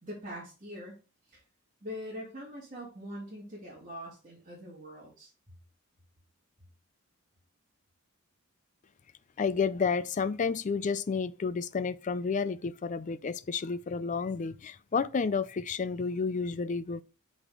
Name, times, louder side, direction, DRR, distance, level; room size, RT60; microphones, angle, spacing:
voice 1, 0.0-1.0 1.3-1.4 1.8-5.3, equal, 35° right, 2.5 m, -43 dB
voice 2, 9.4-17.0, left 5 dB, 35° left, 0.4 m, -31 dB
6.2 x 4.9 x 3.8 m
head